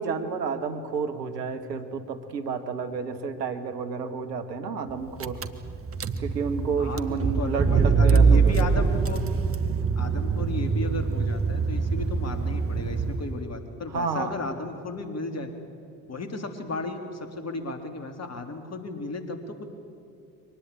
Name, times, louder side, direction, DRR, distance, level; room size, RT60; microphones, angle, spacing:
voice 1, 0.0-5.4 6.2-8.5 13.9-14.3, right 5 dB, 85° right, 8 dB, 1.6 m, -30 dB
Car / Engine, 4.9-5.0 5.2-13.6, right 5 dB, 30° right, 1.3 m, -24 dB
voice 2, 6.8-9.2 10.0-15.5 16.1-19.6, left 2 dB, 30° left, 7 dB, 3.5 m, -34 dB
24.0 x 19.5 x 8.8 m, 2.4 s
hypercardioid pair, 60°, 48 cm